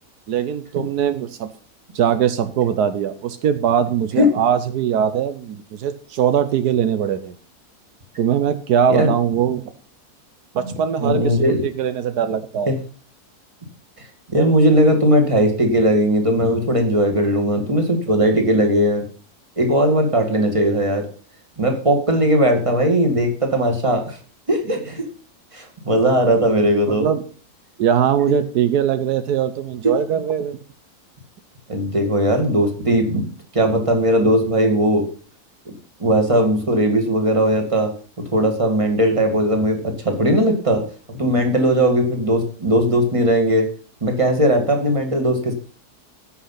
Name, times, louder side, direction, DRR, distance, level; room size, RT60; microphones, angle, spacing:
voice 1, 0.3-1.5 1.9-7.4 8.2-9.6 10.5-12.7 26.9-27.2 27.8-30.6, right 8 dB, 80° right, 10 dB, 1.4 m, -21 dB
voice 2, 11.0-11.6 12.7-12.8 14.0-19.0 19.6-21.1 21.6-24.2 24.5-25.0 25.5-27.1 29.8-29.9 31.7-35.0 36.0-37.9 38.3-43.7 44.0-45.5, equal, 20° right, 4 dB, 2.2 m, -18 dB
16.0 x 5.8 x 5.8 m, 0.42 s
omnidirectional pair, 1.7 m